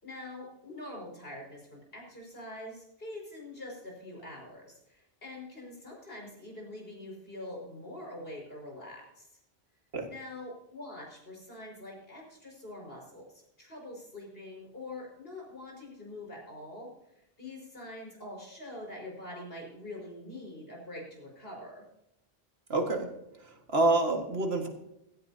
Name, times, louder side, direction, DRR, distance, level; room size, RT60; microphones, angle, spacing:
voice 1, 0.0-9.3 10.1-16.9 17.2-21.8, left 1 dB, 65° left, -1 dB, 5.6 m, -44 dB
voice 2, 22.7-23.1 23.4-24.7, right 2 dB, 80° right, 4 dB, 2.1 m, -27 dB
16.5 x 15.0 x 2.8 m, 0.85 s
omnidirectional pair, 1.0 m